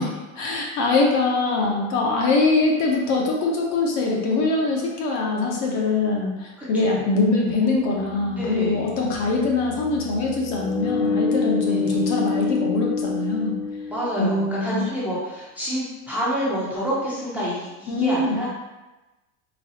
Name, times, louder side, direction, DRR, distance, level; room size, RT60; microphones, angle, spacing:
voice 1, 0.4-13.6 14.2-14.8 17.9-18.4, left 3 dB, 40° left, -1 dB, 0.7 m, -23 dB
sound 1, 6.0-6.1 7.6-14.5, left 4 dB, 85° left, 0.6 m, -28 dB
voice 2, 8.4-9.0 11.7-12.1 13.9-18.5, equal, 5° right, -8 dB, 0.6 m, -28 dB
4.0 x 2.3 x 2.7 m, 1.1 s
supercardioid pair, 135°, 42 cm